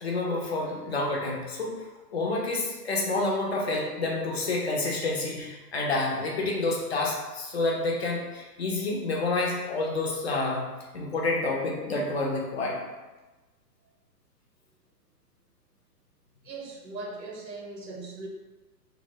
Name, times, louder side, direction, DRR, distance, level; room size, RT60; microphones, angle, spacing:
voice 1, 0.0-1.7 2.1-10.7 10.9-12.8, left 2 dB, 40° left, -1 dB, 0.5 m, -28 dB
voice 2, 16.4-18.3, right 3 dB, 85° right, -1 dB, 0.8 m, -39 dB
2.6 x 2.0 x 2.7 m, 1.1 s
figure-of-eight pair, 125°, 49 cm